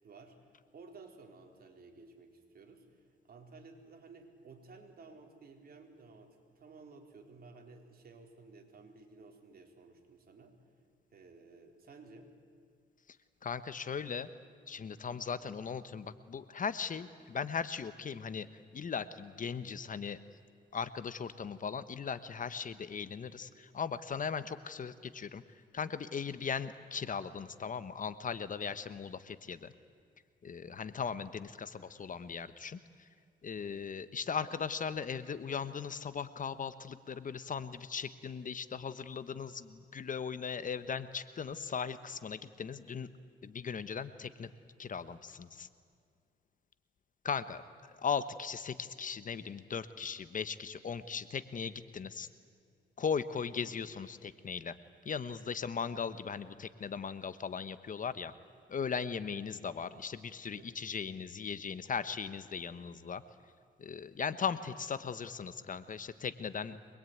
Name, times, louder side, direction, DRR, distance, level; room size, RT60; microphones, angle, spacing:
voice 1, 0.0-10.6 11.1-12.3 60.6-60.7 61.4-61.5, right 3 dB, 50° right, 3 dB, 4.1 m, -55 dB
voice 2, 13.4-14.3 14.7-18.5 18.7-20.2 20.7-25.4 25.7-29.7 30.4-33.1 33.4-43.1 43.4-44.5 44.8-45.7 47.2-47.6 47.9-52.3 53.0-54.8 55.0-58.3 58.7-63.2 63.8-66.8, left 6 dB, 40° left, 13 dB, 1.1 m, -38 dB
25.0 x 21.0 x 9.4 m, 2.2 s
cardioid pair, 90°, 20 cm